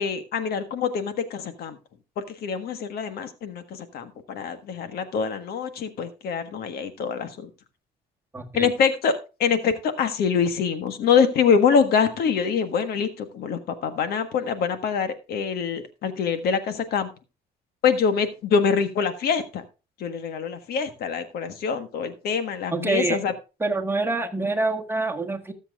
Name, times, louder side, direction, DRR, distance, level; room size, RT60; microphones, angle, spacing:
voice 1, 0.0-1.8 2.4-3.6 3.9-7.5 8.5-9.1 9.4-17.1 17.8-19.6 20.0-23.3, left 6 dB, 65° left, 9 dB, 1.5 m, -24 dB
voice 2, 8.3-8.7 22.7-23.2 23.6-25.5, right 3 dB, 15° right, 4 dB, 1.5 m, -26 dB
19.0 x 7.3 x 2.4 m, 0.30 s
cardioid pair, 110°, 17 cm